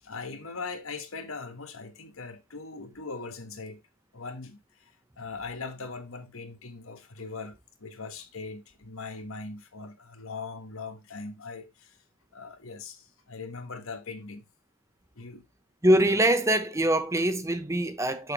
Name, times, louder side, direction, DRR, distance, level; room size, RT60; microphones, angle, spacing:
voice 1, 0.0-3.8 4.1-12.0 12.3-14.4 15.2-15.4, left 4 dB, 65° left, 1.3 m, -40 dB
voice 2, 15.8-18.3, right 1 dB, 15° right, 0.7 m, -23 dB
7.0 x 6.2 x 3.0 m
head